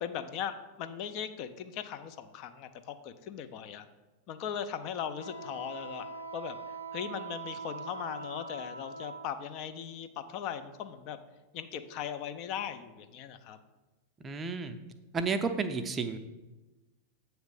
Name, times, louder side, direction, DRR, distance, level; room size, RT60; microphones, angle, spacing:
voice 1, 0.0-3.9 4.3-6.1 6.3-6.6 6.9-11.2 11.5-13.6, left 8 dB, 45° left, 9 dB, 0.5 m, -38 dB
Wind instrument woodwind instrument, 5.2-9.3, right 3 dB, 85° right, 0.4 m, -42 dB
voice 2, 14.2-14.8 15.1-16.2, right 4 dB, 20° right, 8 dB, 0.5 m, -31 dB
8.0 x 3.1 x 4.9 m, 1.1 s
figure-of-eight pair, 90°, 0 cm